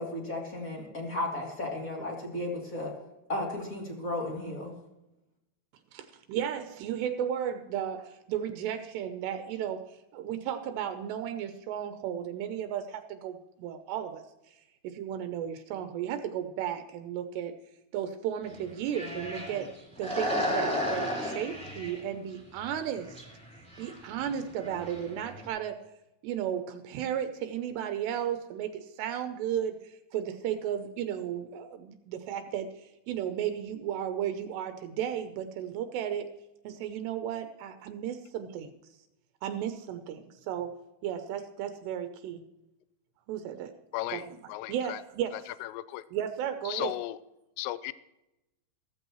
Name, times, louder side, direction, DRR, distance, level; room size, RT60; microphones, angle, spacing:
voice 1, 0.0-2.9 3.3-4.7, left 1 dB, 25° left, -1 dB, 2.4 m, -34 dB
voice 2, 5.9-17.6 17.9-19.7 20.0-23.2 23.8-25.8 26.2-36.3 36.6-38.7 39.4-40.7 41.0-42.4 43.3-43.7 44.1-44.4 44.7-45.4 46.1-46.9, right 9 dB, 80° right, 8 dB, 2.9 m, -34 dB
sound 1, 18.4-19.7 19.9-22.0 22.6-22.8 23.1-23.2 23.5-25.5, equal, ahead, 2.8 m, -33 dB
voice 3, 43.9-45.0 45.6-46.0 46.7-47.2 47.6-47.9, left 16 dB, 85° left, 15 dB, 2.7 m, -35 dB
15.5 x 14.5 x 3.1 m, 0.93 s
omnidirectional pair, 4.9 m